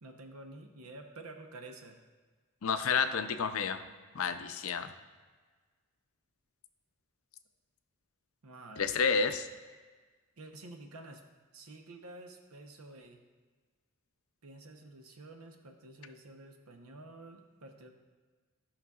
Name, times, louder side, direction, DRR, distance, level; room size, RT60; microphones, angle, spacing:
voice 1, 0.0-2.0 8.4-9.0 10.4-11.2 11.5-13.2 14.4-17.9, right 2 dB, 85° right, 5 dB, 0.8 m, -50 dB
voice 2, 2.6-3.8 4.1-4.9 8.8-9.5, left 5 dB, 70° left, 9 dB, 0.5 m, -30 dB
14.0 x 5.7 x 2.4 m, 1.4 s
head